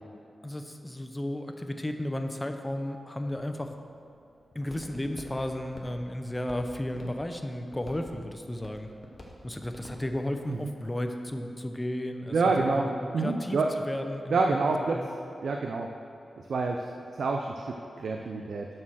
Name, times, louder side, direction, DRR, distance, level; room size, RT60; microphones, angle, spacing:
voice 1, 0.4-3.8 4.5-8.9 9.4-12.3 12.7-12.9 13.2-15.1, left 1 dB, 15° left, 6 dB, 0.6 m, -34 dB
Walk footsteps, 3.3-11.3, left 1 dB, 35° left, 1.2 m, -50 dB
voice 2, 12.3-12.9 13.1-13.7 14.3-15.0 15.4-15.9 16.5-16.8 17.2-18.7, right 3 dB, 75° right, 2 dB, 0.5 m, -27 dB
7.3 x 6.4 x 6.2 m, 2.6 s
wide cardioid pair, 110°, 0 cm